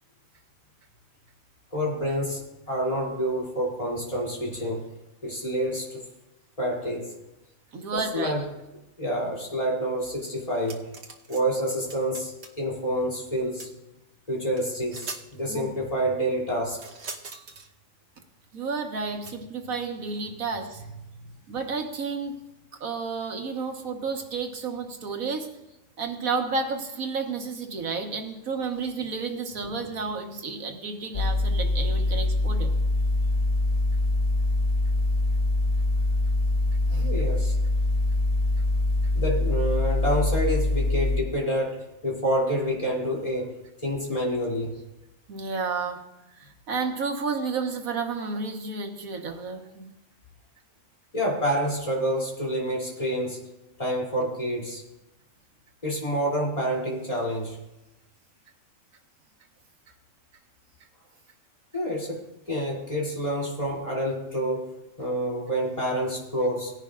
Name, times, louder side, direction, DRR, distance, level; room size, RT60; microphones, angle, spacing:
voice 1, 1.7-4.9 5.2-6.0 6.6-7.1 7.9-8.4 9.0-10.9 11.3-13.7 14.3-16.8 20.8-20.9 37.0-37.5 39.1-43.5 43.8-44.7 51.1-53.4 53.8-54.8 55.8-57.6 61.7-66.7, equal, 25° left, -3 dB, 3.2 m, -28 dB
voice 2, 7.7-8.4 15.5-15.7 18.5-20.8 21.5-22.4 22.8-25.5 26.0-32.7 36.9-37.1 45.3-46.0 46.4-49.9, right 4 dB, 90° right, 4 dB, 1.8 m, -31 dB
sound 1, 10.5-11.4 11.7-12.6 13.6-13.7 14.6-14.7 14.9-15.2 16.8-17.7 19.2-19.3, right 4 dB, 55° right, 1.3 m, -41 dB
sound 2, 31.1-41.2, left 2 dB, 45° left, 0.5 m, -24 dB
19.0 x 10.5 x 2.5 m, 0.97 s
omnidirectional pair, 1.4 m